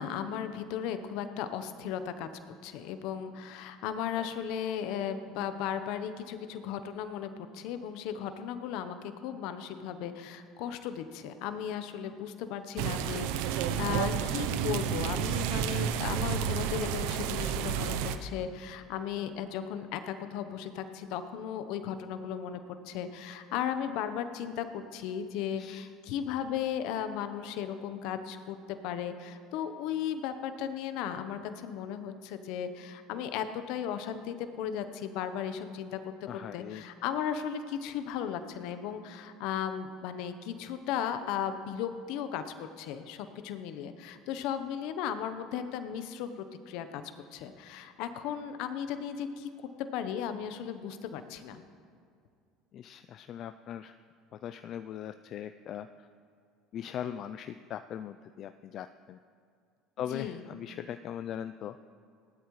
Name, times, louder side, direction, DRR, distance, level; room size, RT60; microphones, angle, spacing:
voice 1, 0.0-22.6 22.9-47.0 47.3-49.5 49.8-51.6 60.0-60.4, left 9 dB, 70° left, 10 dB, 0.9 m, -36 dB
sound 1, 12.8-18.2, right 9 dB, 75° right, 0.7 m, -31 dB
voice 2, 36.3-36.8 52.7-53.9 54.4-55.9 56.7-59.2 60.0-61.8, left 9 dB, 55° left, 10 dB, 0.4 m, -40 dB
18.0 x 12.5 x 3.2 m, 2.4 s
hypercardioid pair, 80°, 0 cm